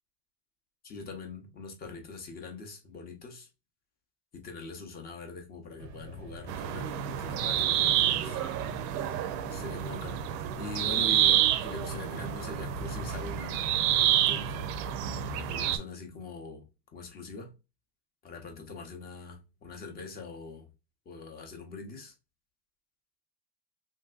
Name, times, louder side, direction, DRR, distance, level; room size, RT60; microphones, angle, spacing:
voice 1, 0.8-3.5 4.3-8.4 9.5-13.7 13.9-14.7 15.4-16.6 16.9-17.5 18.2-20.7 21.1-22.1, left 3 dB, 20° left, 0.5 m, -43 dB
sound 1, 5.8-15.5, equal, 40° right, 0.5 m, -45 dB
sound 2, 6.5-15.8, right 11 dB, 80° right, 0.6 m, -28 dB
3.1 x 2.6 x 2.3 m
supercardioid pair, 145°, 49 cm